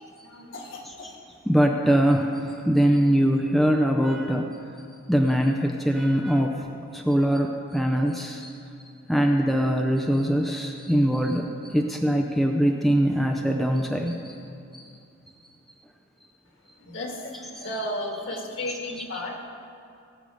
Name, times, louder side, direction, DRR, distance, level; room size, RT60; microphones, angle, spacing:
voice 1, 0.2-1.2 16.8-19.5, left 1 dB, 60° left, 1 dB, 1.7 m, -34 dB
voice 2, 1.5-4.5 5.1-6.6 6.9-8.5 9.1-14.3 18.3-18.7 19.0-19.2, equal, ahead, 2 dB, 0.5 m, -23 dB
18.5 x 7.9 x 4.9 m, 2.5 s
head